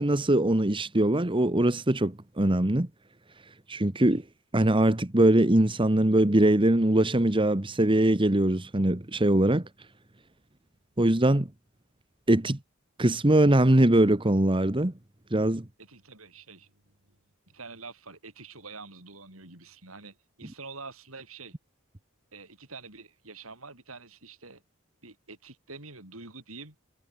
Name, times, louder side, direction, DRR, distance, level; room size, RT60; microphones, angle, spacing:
voice 1, 0.0-2.9 3.7-4.2 4.5-9.6 11.0-11.5 12.3-12.6 13.0-14.9 15.3-15.6, right 1 dB, 25° right, 1.3 m, -22 dB
voice 2, 15.8-16.7 17.5-21.6 22.3-24.6 25.0-26.7, right 4 dB, 90° right, 7.1 m, -46 dB
head